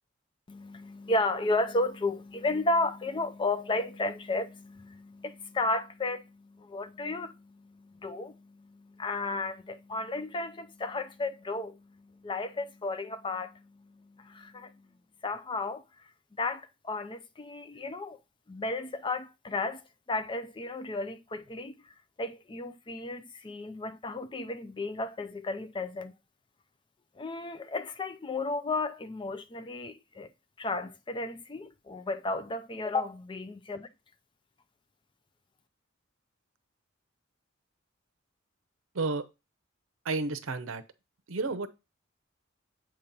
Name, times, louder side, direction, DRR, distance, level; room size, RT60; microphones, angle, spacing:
voice 1, 0.5-14.9 15.2-15.8 16.4-18.2 18.5-21.9 22.2-26.1 27.2-30.3 30.6-33.9, left 2 dB, 25° left, 0.4 m, -33 dB
voice 2, 40.0-40.8 41.3-41.7, right 3 dB, 80° right, 0.7 m, -31 dB
7.7 x 2.9 x 5.2 m
head